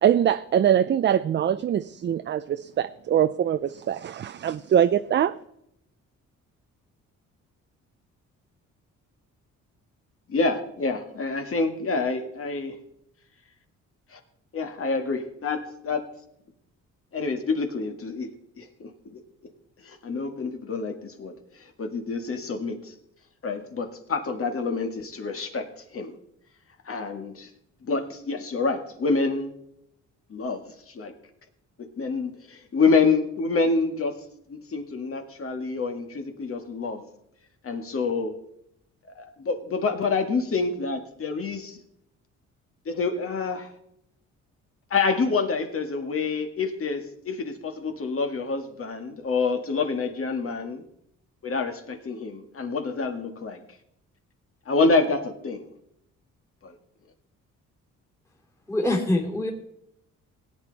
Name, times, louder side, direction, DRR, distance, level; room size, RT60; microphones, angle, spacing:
voice 1, 0.0-5.4, right 9 dB, 40° right, 0.4 m, -23 dB
voice 2, 10.3-12.8 14.1-14.2 14.5-16.0 17.1-18.3 18.6-19.2 19.8-21.3 21.6-22.9 23.4-26.1 26.9-27.5 27.8-29.5 30.3-30.6 30.9-31.1 31.8-34.2 34.5-37.0 37.6-38.3 39.2-41.8 42.9-43.7 44.9-50.8 51.4-53.6 54.7-55.7 56.6-56.8, left 4 dB, 45° left, 1.9 m, -27 dB
voice 3, 58.7-59.5, left 1 dB, 10° left, 2.6 m, -24 dB
17.5 x 9.0 x 4.1 m
cardioid pair, 90°, 30 cm